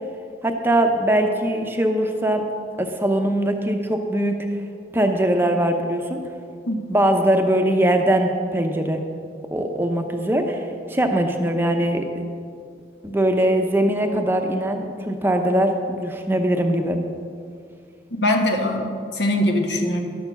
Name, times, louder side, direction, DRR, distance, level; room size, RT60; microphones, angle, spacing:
voice 1, 0.4-2.4 2.8-4.4 4.9-6.2 6.9-9.0 9.5-10.6 10.9-12.0 13.0-17.0, right 1 dB, 15° right, 4 dB, 0.7 m, -21 dB
voice 2, 18.1-20.0, left 1 dB, 75° left, 3 dB, 1.4 m, -22 dB
11.5 x 6.9 x 7.0 m, 2.3 s
head